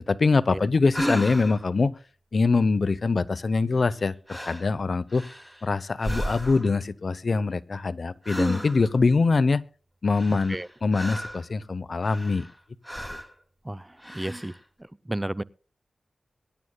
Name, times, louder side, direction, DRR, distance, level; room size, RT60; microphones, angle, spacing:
voice 1, 0.0-1.9 2.3-5.2 5.6-9.6 10.0-12.5, left 4 dB, 60° left, 0.8 m, -24 dB
sound 1, 0.9-1.7 3.8-4.0 4.3-4.7 5.1-5.7 6.0-6.8 8.2-9.0 10.1-11.5 12.0-12.6 12.8-13.3 14.0-14.6, equal, ahead, 2.6 m, -33 dB
voice 2, 13.6-15.4, right 1 dB, 15° right, 0.5 m, -33 dB
23.5 x 11.0 x 2.3 m
cardioid pair, 55°, 0 cm